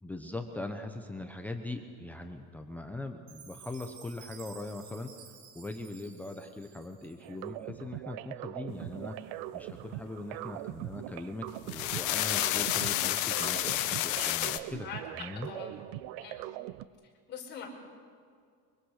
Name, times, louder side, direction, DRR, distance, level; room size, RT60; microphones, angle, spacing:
voice 1, 0.0-5.1 5.5-15.5, left 2 dB, 5° left, 4 dB, 0.8 m, -41 dB
Chime, 3.3-7.5, right 7 dB, 50° right, 3.0 m, -53 dB
sound 1, 7.2-16.9, right 15 dB, 70° right, 0.8 m, -41 dB
sound 2, 11.5-14.6, left 15 dB, 60° left, 1.3 m, -30 dB
voice 2, 17.3-17.7, left 7 dB, 30° left, -1 dB, 5.1 m, -42 dB
24.5 x 24.0 x 6.5 m, 2.2 s
cardioid pair, 180°, 33 cm